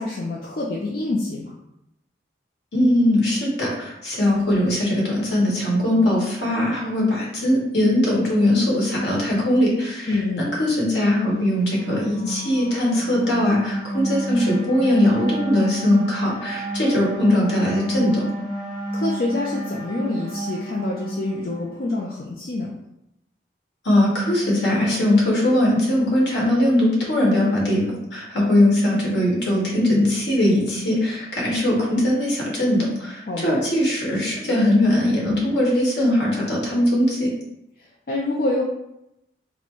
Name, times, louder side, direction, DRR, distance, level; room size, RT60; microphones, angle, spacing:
voice 1, 0.0-1.5 10.1-10.5 18.9-22.7 33.3-33.6 37.8-38.6, left 2 dB, 50° left, -2 dB, 0.5 m, -26 dB
voice 2, 2.7-18.3 23.8-27.9 28.1-37.3, left 1 dB, 70° left, -3 dB, 1.4 m, -20 dB
sound 1, 11.4-21.9, right 1 dB, 25° left, 1.1 m, -30 dB
4.2 x 2.2 x 4.4 m, 0.85 s
head